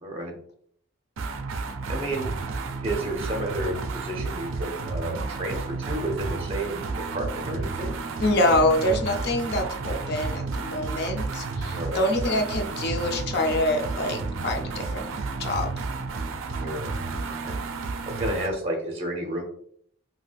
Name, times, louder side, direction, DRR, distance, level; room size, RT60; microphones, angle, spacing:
voice 1, 0.0-0.3 1.9-2.3 2.8-8.0 11.7-12.0 16.6-16.9 17.2-17.6 18.0-19.4, right 1 dB, 30° right, 2 dB, 0.7 m, -31 dB
sound 1, 1.2-18.6, right 3 dB, 70° right, 0.4 m, -31 dB
voice 2, 8.2-15.1 15.4-15.7, left 1 dB, 50° left, 4 dB, 0.4 m, -25 dB
3.1 x 2.8 x 2.3 m, 0.62 s
head